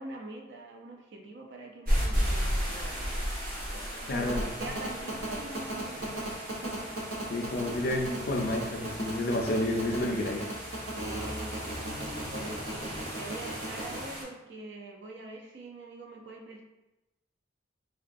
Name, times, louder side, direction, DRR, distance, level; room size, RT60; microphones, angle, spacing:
voice 1, 0.0-3.2 3.7-6.3 6.6-6.9 10.7-11.5 12.3-16.6, right 2 dB, 60° right, 1 dB, 0.5 m, -44 dB
sound 1, 1.8-14.2, equal, 45° right, 0.9 m, -35 dB
voice 2, 4.1-4.5 7.3-10.4, left 1 dB, 50° left, 2 dB, 0.4 m, -30 dB
sound 2, 4.3-14.0, right 2 dB, 80° right, 0.8 m, -36 dB
3.7 x 2.2 x 2.5 m, 0.99 s
head